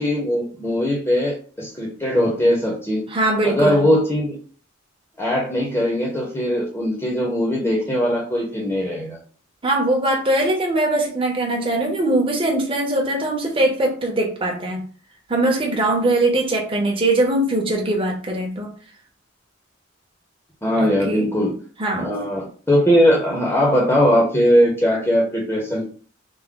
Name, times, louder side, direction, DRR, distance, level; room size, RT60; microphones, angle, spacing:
voice 1, 0.0-3.0 3.4-4.3 5.2-9.2 20.6-21.5 22.0-25.9, equal, 10° left, -2 dB, 0.7 m, -20 dB
voice 2, 3.1-3.9 9.6-14.8 15.3-18.7 20.8-21.3 21.8-22.1, right 1 dB, 25° right, 0 dB, 0.7 m, -21 dB
3.4 x 2.1 x 3.6 m, 0.41 s
head